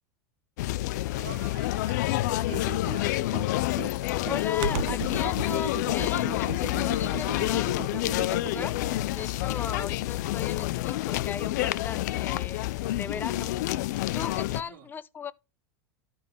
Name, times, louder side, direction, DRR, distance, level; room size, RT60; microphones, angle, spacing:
sound 1, 0.6-14.6, left 16 dB, 75° left, 0.5 m, -28 dB
voice 1, 1.1-3.4 9.7-9.9 14.5-14.9, right 6 dB, 85° right, 2.4 m, -48 dB
Computer keyboard, 2.4-9.2, right 11 dB, 65° right, 0.8 m, -37 dB
voice 2, 4.3-8.8 9.1-13.5 14.1-15.3, left 7 dB, 20° left, 0.7 m, -37 dB
13.0 x 5.7 x 3.5 m
supercardioid pair, 135°, 10 cm